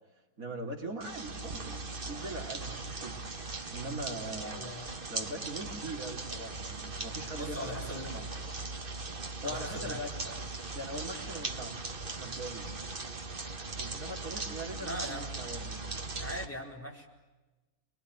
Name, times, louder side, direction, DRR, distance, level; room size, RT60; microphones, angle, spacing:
voice 1, 0.4-3.2 3.7-4.6 5.1-8.3 9.4-10.1 10.7-12.8 13.8-15.8, right 1 dB, 65° right, 2 dB, 3.3 m, -41 dB
sound 1, 1.0-16.5, right 3 dB, 35° right, 1.8 m, -39 dB
voice 2, 4.4-4.9 7.3-8.1 9.4-10.4 14.8-15.3 16.2-17.1, equal, 10° left, -1 dB, 5.0 m, -41 dB
28.5 x 22.5 x 9.3 m, 1.2 s
omnidirectional pair, 1.6 m